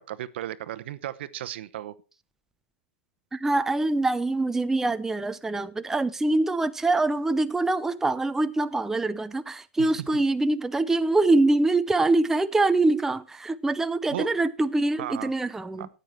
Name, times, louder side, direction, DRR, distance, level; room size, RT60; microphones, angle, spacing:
voice 1, 0.0-2.0 9.8-10.1 14.1-14.3 15.0-15.3 15.8-15.9, right 12 dB, 65° right, 0.9 m, -35 dB
voice 2, 3.3-15.9, right 2 dB, 5° right, 0.5 m, -24 dB
13.5 x 9.1 x 4.4 m
hypercardioid pair, 115°, 6 cm